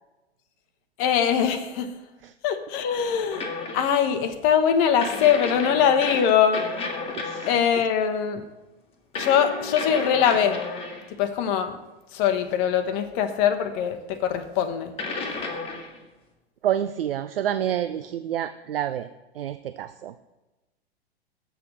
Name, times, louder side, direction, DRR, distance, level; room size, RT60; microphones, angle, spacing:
voice 1, 1.0-1.9 2.4-3.5 3.7-6.7 7.5-8.4 9.1-10.6 11.2-11.8 12.1-14.9, left 8 dB, 35° left, 7 dB, 0.9 m, -22 dB
sound 1, 3.3-4.0 5.0-7.7 9.1-11.1 13.2-13.3 15.0-16.0, left 3 dB, 20° left, 1.6 m, -32 dB
voice 2, 7.2-7.5 16.6-19.1 19.4-20.1, right 10 dB, 65° right, 12 dB, 0.5 m, -28 dB
7.8 x 6.8 x 6.6 m, 1.1 s
figure-of-eight pair, 100°, 31 cm